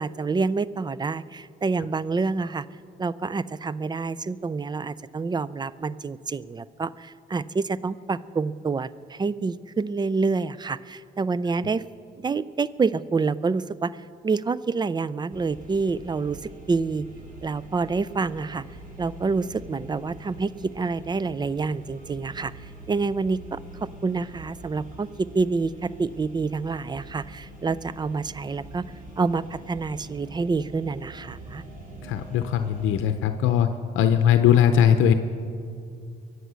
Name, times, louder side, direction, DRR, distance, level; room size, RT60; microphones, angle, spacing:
voice 1, 0.0-2.6 3.0-11.8 12.2-17.1 17.4-18.6 19.0-22.5 22.9-28.9 29.2-31.6, right 4 dB, 20° right, 18 dB, 0.4 m, -27 dB
sound 1, 15.3-33.0, right 2 dB, 45° right, 4.7 m, -44 dB
voice 2, 32.1-33.7 33.9-35.1, left 9 dB, 85° left, 8 dB, 0.7 m, -19 dB
23.0 x 8.1 x 6.3 m, 2.4 s
cardioid pair, 90°, 20 cm